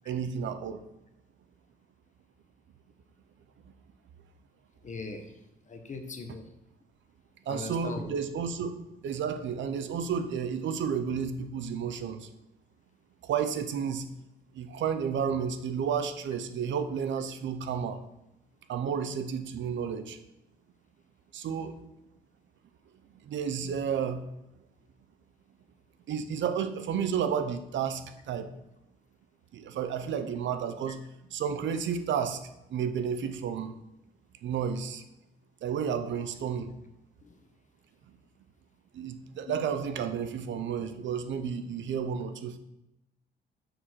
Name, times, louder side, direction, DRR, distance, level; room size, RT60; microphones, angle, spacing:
voice 1, 0.1-0.8 7.5-8.7 9.0-12.3 13.2-14.1 14.5-18.0 18.7-20.2 21.3-21.8 23.2-24.3 26.1-28.5 29.5-31.0 31.3-32.4 32.7-33.8 34.4-35.0 35.6-36.7 38.9-42.6, right 7 dB, 70° right, 9 dB, 0.8 m, -31 dB
voice 2, 4.8-5.2 5.7-6.4 7.5-8.2 37.2-37.3 39.5-39.6, left 4 dB, 40° left, 6 dB, 1.2 m, -39 dB
6.2 x 4.9 x 6.2 m, 0.88 s
cardioid pair, 90°, 20 cm